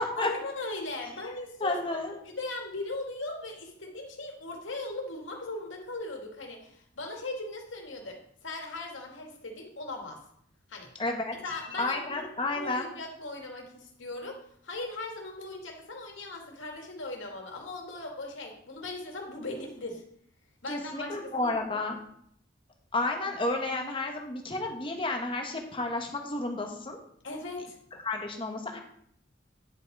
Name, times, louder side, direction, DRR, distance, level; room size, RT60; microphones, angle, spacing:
voice 1, 0.2-2.0 2.2-10.2 10.7-10.9 11.4-20.0 20.6-21.6 27.2-27.8, left 2 dB, 85° left, 1 dB, 2.2 m, -39 dB
voice 2, 1.6-2.2 11.0-11.4 11.8-12.9 20.7-22.0 22.9-27.0 28.0-28.8, left 2 dB, 25° left, 3 dB, 1.3 m, -31 dB
10.0 x 5.7 x 4.8 m, 0.67 s
head